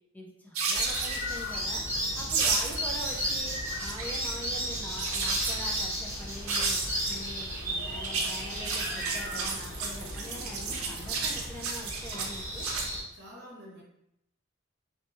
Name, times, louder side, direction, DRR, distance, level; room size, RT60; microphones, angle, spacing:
voice 1, 0.1-1.9 2.2-6.8 7.1-12.7, equal, 10° left, -2 dB, 0.4 m, -43 dB
sound 1, 0.5-1.6 2.3-3.3 3.6-4.3 5.0-5.8 6.5-7.2 7.9-12.9, right 4 dB, 85° right, 0.5 m, -32 dB
sound 2, 0.7-13.0, equal, 10° right, 0.9 m, -34 dB
sound 3, 1.6-11.5, left 2 dB, 70° left, 0.4 m, -50 dB
voice 2, 2.1-2.4 13.1-13.8, equal, 55° right, -3 dB, 0.9 m, -48 dB
2.7 x 2.6 x 2.4 m, 0.80 s
head